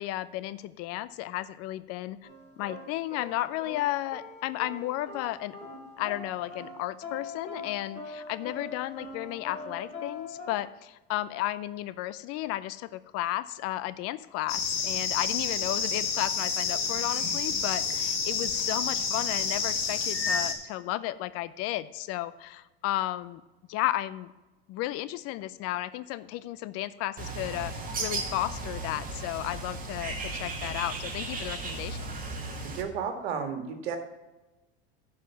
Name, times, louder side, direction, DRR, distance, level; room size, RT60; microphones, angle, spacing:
voice 1, 0.0-2.2 2.6-5.6 6.0-23.4 23.7-24.3 24.7-32.1, left 15 dB, 50° left, 16 dB, 0.6 m, -33 dB
sound 1, 2.2-10.6, left 3 dB, 20° left, 3.6 m, -43 dB
sound 2, 14.5-20.5, left 5 dB, 70° left, 2.3 m, -29 dB
Bird, 27.2-32.8, right 3 dB, 25° right, 2.1 m, -35 dB
voice 2, 32.6-34.0, right 6 dB, 75° right, 7 dB, 1.8 m, -33 dB
11.0 x 4.9 x 7.0 m, 1.1 s
hypercardioid pair, 100°, 31 cm